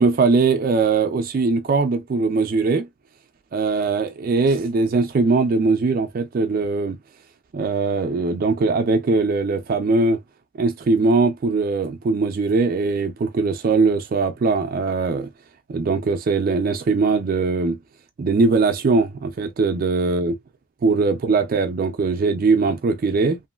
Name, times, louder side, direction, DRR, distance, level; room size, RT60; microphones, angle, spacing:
voice 1, 0.0-2.9 3.5-7.0 7.5-10.2 10.5-15.3 15.7-17.8 18.2-20.4 20.8-23.4, right 4 dB, 40° right, 0.3 m, -20 dB
3.0 x 2.5 x 2.3 m
head